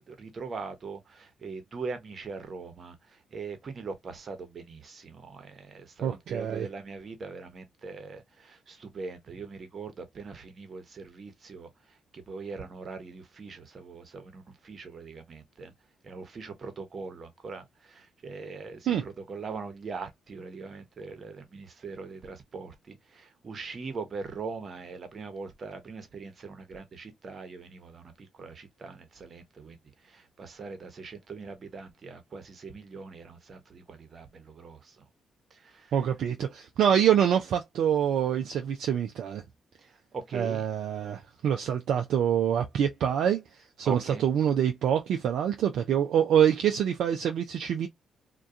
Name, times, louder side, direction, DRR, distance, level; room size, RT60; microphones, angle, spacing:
voice 1, 0.1-15.7 16.0-35.0 35.5-35.9 39.8-40.7 43.8-44.2, right 4 dB, 50° right, 0.8 m, -41 dB
voice 2, 6.0-6.7 18.9-19.0 35.9-39.4 40.3-47.9, right 9 dB, 70° right, 0.3 m, -26 dB
2.3 x 2.2 x 2.6 m
hypercardioid pair, 50°, 0 cm